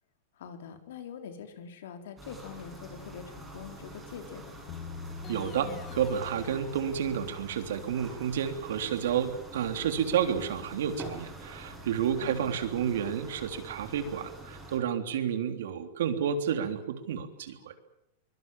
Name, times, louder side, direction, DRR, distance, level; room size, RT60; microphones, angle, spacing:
voice 1, 0.3-4.7 12.2-12.5, left 7 dB, 75° left, 7 dB, 4.2 m, -44 dB
sound 1, 2.2-14.8, right 1 dB, 5° right, 6.8 m, -46 dB
Bass guitar, 4.7-10.9, left 4 dB, 40° left, 2.5 m, -46 dB
sound 2, 5.2-7.6, left 6 dB, 20° left, 2.2 m, -48 dB
voice 2, 5.3-17.7, right 8 dB, 80° right, 8 dB, 3.4 m, -30 dB
24.0 x 22.5 x 7.5 m, 0.80 s
supercardioid pair, 160°, 0 cm